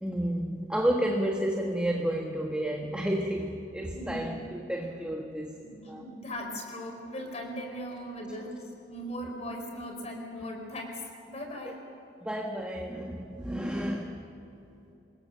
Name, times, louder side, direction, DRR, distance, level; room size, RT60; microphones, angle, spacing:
voice 1, 0.0-5.6 5.9-6.0 12.2-14.3, right 1 dB, 5° right, 0 dB, 1.5 m, -31 dB
voice 2, 3.9-4.3 5.6-11.8, equal, 40° left, 2 dB, 5.0 m, -39 dB
26.5 x 21.0 x 6.7 m, 2.9 s
head